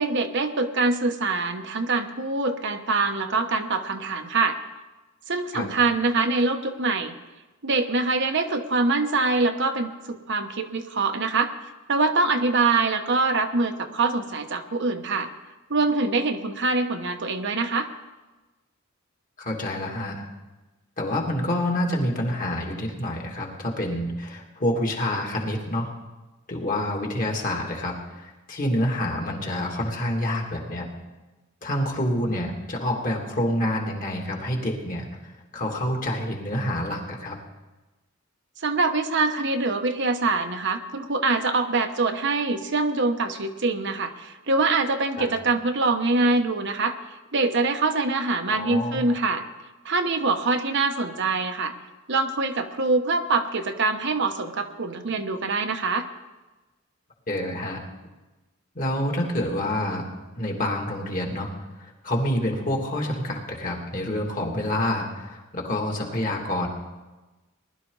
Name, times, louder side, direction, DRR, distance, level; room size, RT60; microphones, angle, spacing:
voice 1, 0.0-4.6 5.3-7.1 7.6-11.5 11.9-15.3 15.7-17.9 38.6-47.0 47.3-49.4 49.8-51.7 52.1-56.1, right 3 dB, 60° right, 6 dB, 1.0 m, -24 dB
voice 2, 19.4-20.2 21.0-25.9 26.5-30.9 31.6-37.4 45.2-45.3 48.5-49.2 57.3-57.8 58.7-60.1 60.4-61.5 61.8-66.7, left 1 dB, 40° left, 0 dB, 2.5 m, -27 dB
20.0 x 12.0 x 4.0 m, 1.1 s
head